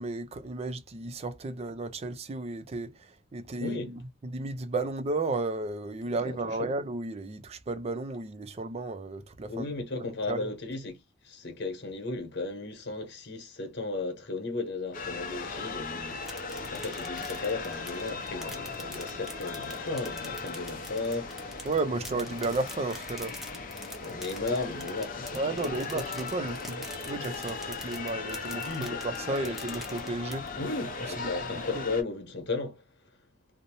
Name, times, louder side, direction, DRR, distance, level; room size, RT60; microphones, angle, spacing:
voice 1, 0.0-9.7 10.3-10.5 21.6-23.3 25.3-30.6 31.2-31.3 31.7-31.8, right 2 dB, 35° right, 0.4 m, -33 dB
voice 2, 3.6-3.9 6.0-6.7 9.5-16.2 16.5-21.7 24.0-25.9 28.6-29.1 29.3-29.6 30.5-33.1, left 3 dB, 65° left, 1.0 m, -35 dB
sound 1, 14.9-32.0, left 4 dB, 45° left, 0.5 m, -38 dB
sound 2, 16.1-30.7, equal, ahead, 0.7 m, -47 dB
2.6 x 2.0 x 2.8 m
head